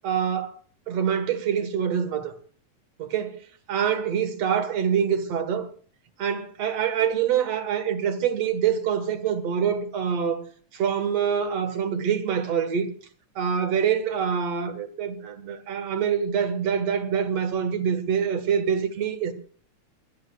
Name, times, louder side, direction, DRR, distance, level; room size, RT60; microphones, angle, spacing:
voice 1, 0.0-0.5 0.9-2.3 3.0-3.4 3.7-5.7 6.2-10.4 10.7-12.9 13.4-19.3, right 7 dB, 60° right, 2.5 m, -25 dB
21.5 x 19.5 x 2.3 m
omnidirectional pair, 3.3 m